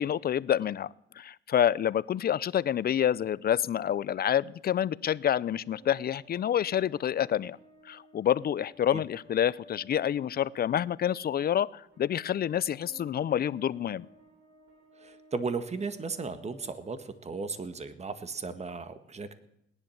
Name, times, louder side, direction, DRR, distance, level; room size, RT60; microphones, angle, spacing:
voice 1, 0.0-7.6 7.8-14.1, left 10 dB, 50° left, 19 dB, 0.6 m, -28 dB
sound 1, 5.5-18.5, equal, 90° right, 5.2 m, -58 dB
voice 2, 15.0-19.3, right 4 dB, 35° right, 11 dB, 1.7 m, -36 dB
18.5 x 11.0 x 7.2 m, 0.77 s
cardioid pair, 90°, 20 cm